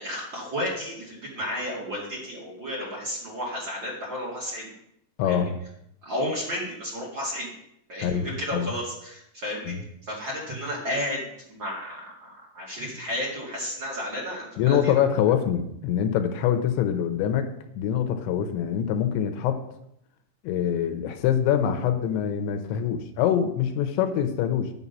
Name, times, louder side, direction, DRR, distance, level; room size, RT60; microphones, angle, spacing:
voice 1, 0.0-4.7 5.2-5.4 6.0-7.5 7.9-9.7 10.1-14.9, left 1 dB, 35° right, -4 dB, 2.0 m, -32 dB
voice 2, 5.2-5.6 8.0-8.7 9.7-9.8 14.6-19.6 20.4-24.7, left 9 dB, 85° left, 7 dB, 3.0 m, -24 dB
9.9 x 7.2 x 5.5 m, 0.78 s
omnidirectional pair, 5.5 m